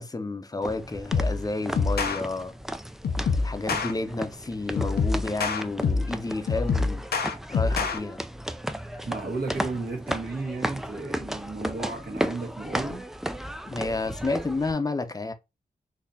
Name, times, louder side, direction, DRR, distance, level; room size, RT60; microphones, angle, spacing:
voice 1, 0.0-2.5 3.3-7.0 7.5-8.2 13.7-15.3, left 3 dB, 20° left, 0.7 m, -30 dB
sound 1, 0.6-14.7, equal, ahead, 0.3 m, -35 dB
sound 2, 1.1-1.4 1.8-2.2 3.0-3.9 4.8-6.1 6.5-8.0, left 4 dB, 70° left, 0.6 m, -25 dB
voice 2, 9.0-13.1, right 3 dB, 65° right, 1.3 m, -33 dB
4.0 x 2.8 x 2.7 m
cardioid pair, 65°, 17 cm